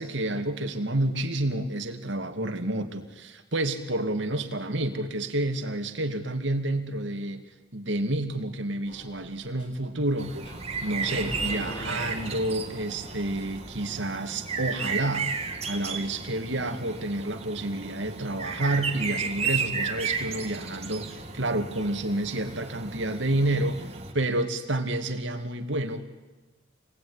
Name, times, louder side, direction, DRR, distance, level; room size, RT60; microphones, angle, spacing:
voice 1, 0.0-7.4 7.7-10.5 10.8-15.3 15.7-26.0, right 1 dB, 70° right, 6 dB, 2.5 m, -29 dB
Sliding door, 8.9-13.8, equal, 30° left, 6.7 m, -41 dB
sound 1, 10.2-24.1, right 5 dB, 30° right, 2.4 m, -34 dB
27.5 x 20.0 x 9.8 m, 1.2 s
head